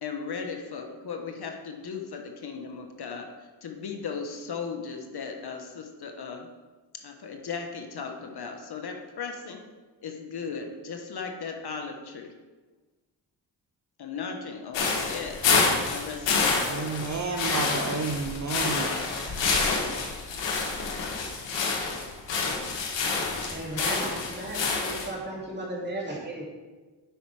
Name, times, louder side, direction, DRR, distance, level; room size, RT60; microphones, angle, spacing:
voice 1, 0.0-6.5 7.0-9.6 10.0-12.3 14.0-15.5 15.9-16.8, left 5 dB, 60° left, 3 dB, 1.2 m, -37 dB
sound 1, 14.7-25.1, left 4 dB, 85° left, 1.5 m, -28 dB
voice 2, 16.7-18.9, right 4 dB, 40° right, 3 dB, 0.8 m, -31 dB
voice 3, 23.4-26.4, right 1 dB, 25° right, -3 dB, 2.7 m, -35 dB
7.8 x 5.6 x 4.8 m, 1.3 s
cardioid pair, 70°, 43 cm